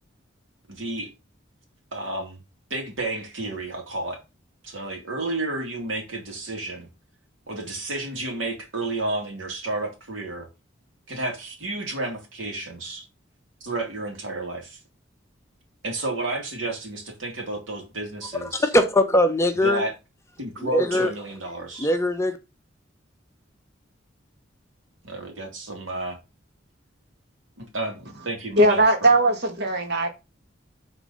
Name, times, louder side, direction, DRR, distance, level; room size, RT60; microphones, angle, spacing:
voice 1, 0.7-1.1 1.9-2.4 2.7-4.2 4.6-6.9 7.5-10.5 11.1-13.1 13.6-14.8 15.8-18.7 19.5-19.9 20.4-21.9 25.0-26.2 27.6-29.1, right 2 dB, 80° right, 2.4 m, -31 dB
voice 2, 18.4-19.8 20.6-21.1 21.8-22.4, left 1 dB, 15° left, 0.7 m, -21 dB
voice 3, 28.6-30.1, right 1 dB, 55° right, 1.8 m, -19 dB
6.6 x 3.8 x 5.4 m
head